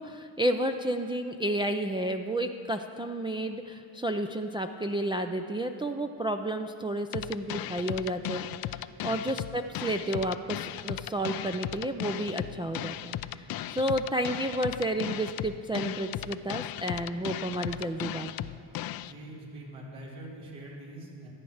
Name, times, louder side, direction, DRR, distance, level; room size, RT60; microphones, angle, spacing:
voice 1, 0.0-18.5, right 1 dB, 10° right, 4 dB, 0.4 m, -31 dB
sound 1, 7.1-19.1, left 13 dB, 50° left, 0.4 m, -36 dB
voice 2, 19.0-21.3, right 1 dB, 70° right, -4 dB, 3.2 m, -44 dB
13.5 x 8.5 x 6.4 m, 2.4 s
supercardioid pair, 75°, 49 cm